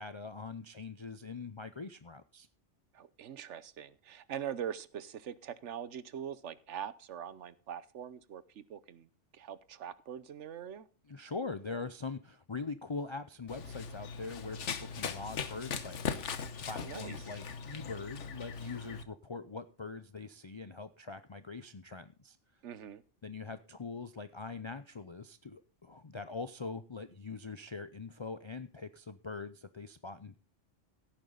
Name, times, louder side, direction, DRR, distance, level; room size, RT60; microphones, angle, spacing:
voice 1, 0.0-2.5 11.1-22.4 23.2-30.4, left 4 dB, 35° left, 0.5 m, -43 dB
voice 2, 2.9-10.9 16.7-17.2 22.6-23.0, right 9 dB, 70° right, 1.1 m, -43 dB
Run, 13.5-19.0, left 6 dB, 75° left, 1.3 m, -40 dB
16.5 x 9.0 x 3.9 m
omnidirectional pair, 1.3 m